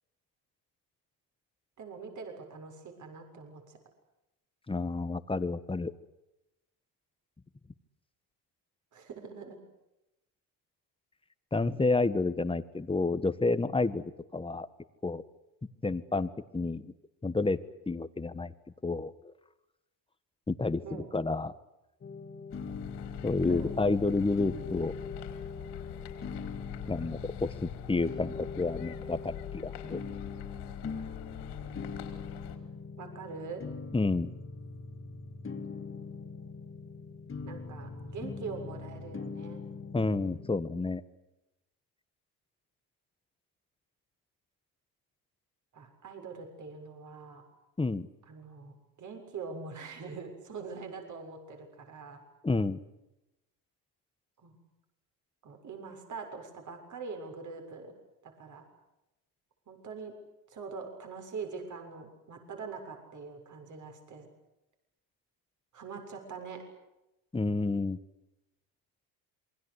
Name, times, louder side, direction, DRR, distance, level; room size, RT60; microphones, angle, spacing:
voice 1, 1.8-3.8 8.9-9.6 20.8-21.1 23.5-23.7 33.0-33.6 37.4-39.6 45.7-47.4 48.3-52.2 54.4-54.6 55.4-57.9 58.2-58.6 59.7-60.1 60.5-64.3 65.7-66.6, right 5 dB, 50° right, 5 dB, 7.0 m, -43 dB
voice 2, 4.7-5.9 11.5-14.7 15.0-15.2 15.8-16.9 17.2-17.6 17.9-18.5 18.8-19.1 20.5-21.5 23.2-24.9 26.9-30.0 33.9-34.3 39.9-41.0 47.8-48.1 52.4-52.8 67.3-68.0, left 3 dB, 15° left, 13 dB, 1.5 m, -30 dB
sound 1, 22.0-40.6, left 4 dB, 30° left, 2.9 m, -42 dB
sound 2, 22.5-32.6, left 12 dB, 85° left, 4.6 m, -44 dB
27.5 x 22.5 x 8.3 m, 0.93 s
cardioid pair, 105°, 39 cm